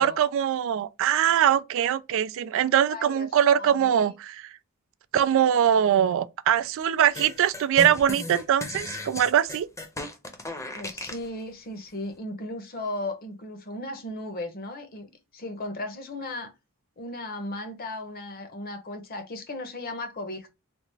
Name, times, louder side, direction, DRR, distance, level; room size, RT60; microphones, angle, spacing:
voice 1, 0.0-4.4 5.1-9.7, right 9 dB, 60° right, 0.3 m, -22 dB
voice 2, 2.6-3.3 3.6-4.1 10.7-16.5 17.0-20.5, left 2 dB, 45° left, 0.8 m, -36 dB
sound 1, 7.1-11.3, left 2 dB, 15° left, 0.7 m, -36 dB
3.4 x 2.4 x 3.0 m
head